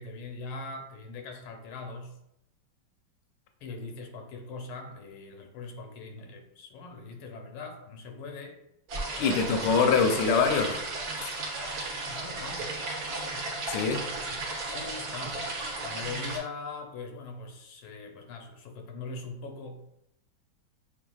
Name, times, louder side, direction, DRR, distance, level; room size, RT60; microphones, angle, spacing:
voice 1, 0.0-2.2 3.6-8.6 9.2-9.5 12.1-12.9 13.3-13.5 14.2-15.5 15.8-19.8, left 3 dB, 90° left, 3 dB, 1.5 m, -41 dB
sound 1, 8.9-16.4, right 2 dB, 55° right, 1.2 m, -34 dB
voice 2, 9.2-10.9 11.2-11.3 13.7-14.1, left 5 dB, 70° left, 5 dB, 1.1 m, -24 dB
7.0 x 2.4 x 2.3 m, 0.82 s
omnidirectional pair, 2.3 m